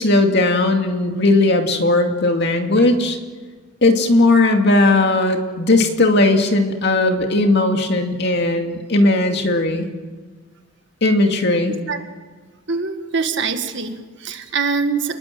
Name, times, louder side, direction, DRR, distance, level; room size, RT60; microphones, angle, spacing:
voice 1, 0.0-3.2 3.8-9.9 11.0-11.8, left 2 dB, 50° left, 4 dB, 2.4 m, -17 dB
voice 2, 11.7-12.0 12.7-15.2, right 4 dB, 55° right, 7 dB, 1.9 m, -24 dB
28.5 x 20.5 x 7.7 m, 1.4 s
head